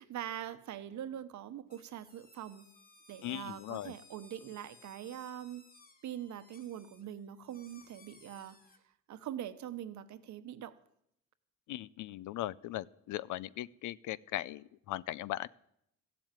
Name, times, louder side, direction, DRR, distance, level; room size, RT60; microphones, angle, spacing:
voice 1, 0.0-2.7 3.1-5.7 6.0-8.6 9.1-10.8, right 10 dB, 70° right, 12 dB, 1.0 m, -43 dB
sound 1, 1.7-8.8, left 3 dB, 30° left, 1.6 m, -61 dB
voice 2, 3.2-3.9 11.7-15.5, left 14 dB, 80° left, 20 dB, 0.5 m, -39 dB
14.5 x 7.7 x 8.9 m, 0.76 s
cardioid pair, 90°, 30 cm